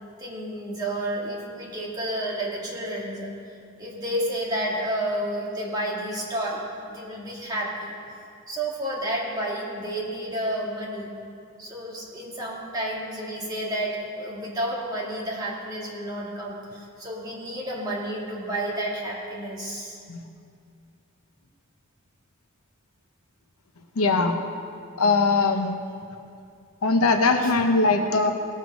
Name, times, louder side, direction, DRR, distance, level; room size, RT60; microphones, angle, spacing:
voice 1, 0.2-3.3 3.8-7.9 8.5-11.1 11.6-20.0 27.4-27.5, right 1 dB, 15° right, -4 dB, 1.9 m, -31 dB
voice 2, 24.0-24.3 25.0-25.7 26.8-28.3, left 3 dB, 75° left, 5 dB, 0.9 m, -20 dB
17.5 x 6.5 x 5.2 m, 2.4 s
head